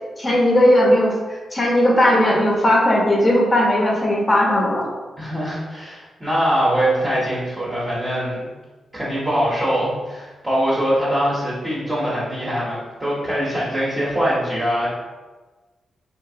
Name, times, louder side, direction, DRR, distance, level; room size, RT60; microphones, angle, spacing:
voice 1, 0.2-4.9, left 1 dB, 25° left, -2 dB, 0.7 m, -17 dB
voice 2, 5.2-8.5 8.9-14.9, equal, 15° right, -8 dB, 0.8 m, -22 dB
2.8 x 2.6 x 2.6 m, 1.3 s
cardioid pair, 90°, 0 cm